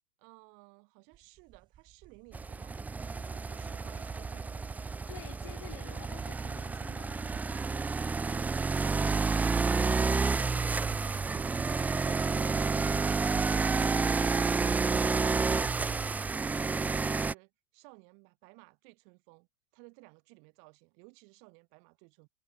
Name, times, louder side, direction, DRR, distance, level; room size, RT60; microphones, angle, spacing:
voice 1, 0.2-2.8 3.1-4.9 9.7-19.5 19.7-22.3, right 40 dB or more, 55° right, 6.2 m, -57 dB
sound 1, 1.1-16.1, right 12 dB, 35° right, 1.2 m, -50 dB
sound 2, 2.3-17.3, right 4 dB, 10° right, 0.6 m, -30 dB
voice 2, 5.1-7.2, left 16 dB, 70° left, 7.3 m, -50 dB
hypercardioid pair, 110°, 14 cm